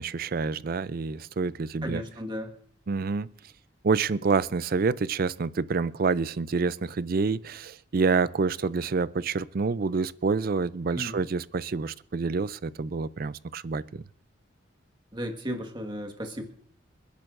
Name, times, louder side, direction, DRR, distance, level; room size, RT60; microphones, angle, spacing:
voice 1, 0.0-2.0 2.9-3.3 3.8-14.0, right 4 dB, 45° right, 0.4 m, -27 dB
voice 2, 1.8-2.5 10.9-11.1 15.1-16.4, equal, 20° right, 1.6 m, -34 dB
28.0 x 10.5 x 2.6 m
head